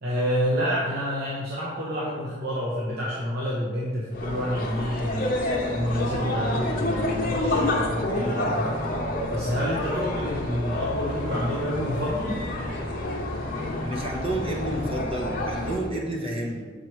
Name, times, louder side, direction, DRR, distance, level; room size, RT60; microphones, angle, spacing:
voice 1, 0.0-5.4 5.7-8.6 9.3-12.4, equal, 55° right, -6 dB, 0.9 m, -28 dB
sound 1, 4.1-15.9, left 1 dB, 50° left, 0.7 m, -28 dB
voice 2, 13.8-16.6, right 1 dB, 30° right, -1 dB, 0.9 m, -30 dB
6.7 x 4.6 x 3.1 m, 1.5 s
head